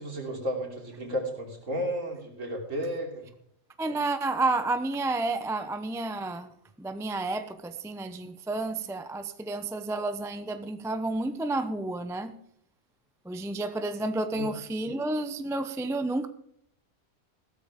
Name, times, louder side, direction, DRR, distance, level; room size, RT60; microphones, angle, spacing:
voice 1, 0.0-3.3 14.3-14.5, equal, 60° right, 0 dB, 3.6 m, -33 dB
voice 2, 3.8-6.5 6.8-12.3 13.3-16.3, right 2 dB, 5° right, 9 dB, 0.5 m, -30 dB
15.5 x 13.0 x 3.7 m, 0.68 s
omnidirectional pair, 1.5 m